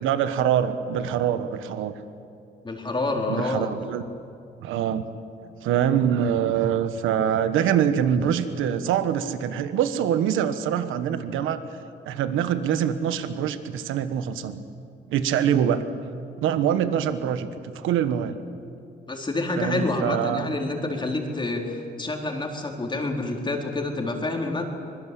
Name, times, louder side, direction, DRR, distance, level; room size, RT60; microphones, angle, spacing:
voice 1, 0.0-1.9 3.3-4.0 4.6-5.1 5.6-11.6 12.0-14.6 15.1-15.8 16.4-17.5 17.7-18.4 19.6-20.5, right 9 dB, 90° right, 11 dB, 1.3 m, -24 dB
voice 2, 2.6-3.7 19.1-24.7, left 2 dB, 25° left, 1 dB, 4.1 m, -28 dB
25.0 x 21.5 x 8.4 m, 2.6 s
cardioid pair, 90°, 20 cm